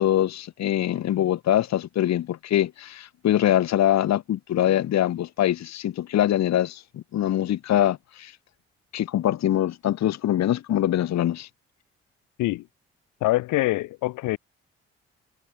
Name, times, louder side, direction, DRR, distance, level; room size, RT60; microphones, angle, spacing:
voice 1, 0.0-8.3 8.9-11.5, left 12 dB, 60° left, 1.1 m, -23 dB
voice 2, 13.2-14.4, left 18 dB, 75° left, 2.2 m, -24 dB
hypercardioid pair, 45°, 31 cm